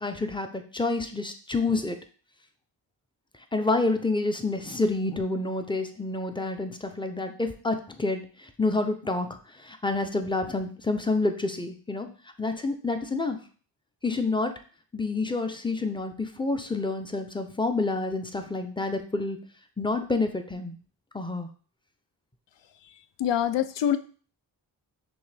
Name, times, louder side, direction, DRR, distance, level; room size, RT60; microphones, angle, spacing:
voice 1, 0.0-2.0 3.5-9.3 9.6-12.1 12.4-13.4 14.0-14.5 14.9-19.4 19.8-20.7 21.1-21.5, left 3 dB, 10° left, 6 dB, 0.5 m, -28 dB
voice 2, 23.2-24.0, left 10 dB, 70° left, 12 dB, 0.5 m, -24 dB
6.0 x 2.2 x 3.3 m, 0.41 s
cardioid pair, 75°, 44 cm